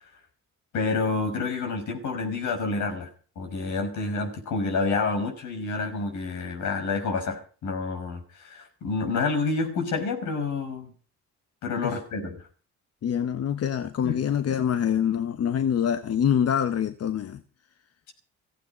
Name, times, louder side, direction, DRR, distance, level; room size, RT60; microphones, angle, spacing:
voice 1, 0.7-3.1 3.4-10.9 11.6-12.4 14.0-14.2, left 4 dB, 75° left, 5.7 m, -28 dB
voice 2, 13.0-17.4, left 8 dB, 55° left, 1.1 m, -25 dB
15.5 x 15.5 x 5.2 m
cardioid pair, 90°, 30 cm